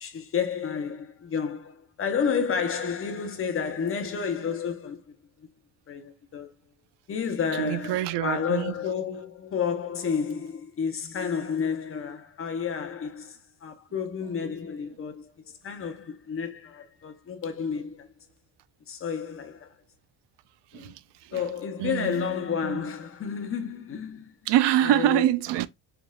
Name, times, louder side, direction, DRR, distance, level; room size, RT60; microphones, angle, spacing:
voice 1, 0.0-5.1 5.9-6.5 7.1-15.3 15.6-18.1 18.9-19.7 20.7-20.9 21.3-24.3 24.8-25.2, left 6 dB, 30° left, 0.9 m, -31 dB
voice 2, 7.5-8.7 20.7-20.9 21.2-21.5 21.8-22.3 22.6-22.8 24.5-25.7, right 13 dB, 80° right, 0.6 m, -25 dB
4.9 x 3.6 x 2.3 m
cardioid pair, 170°, 41 cm